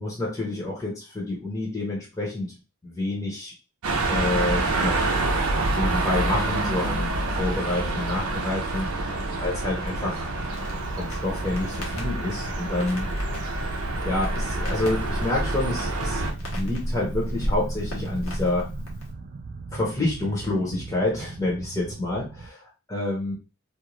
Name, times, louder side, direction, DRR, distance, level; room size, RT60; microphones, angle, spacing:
voice 1, 0.0-2.5 2.8-3.5 4.1-5.1 5.7-10.3 10.9-13.1 14.0-18.7 19.7-23.3, left 2 dB, 15° left, -4 dB, 0.7 m, -28 dB
sound 1, 3.8-16.3, right 2 dB, 90° right, 0.6 m, -27 dB
Crackle, 10.5-19.1, equal, 75° left, 0.9 m, -33 dB
sound 2, 12.9-22.5, right 3 dB, 45° right, 0.3 m, -40 dB
2.5 x 2.3 x 3.0 m, 0.30 s
head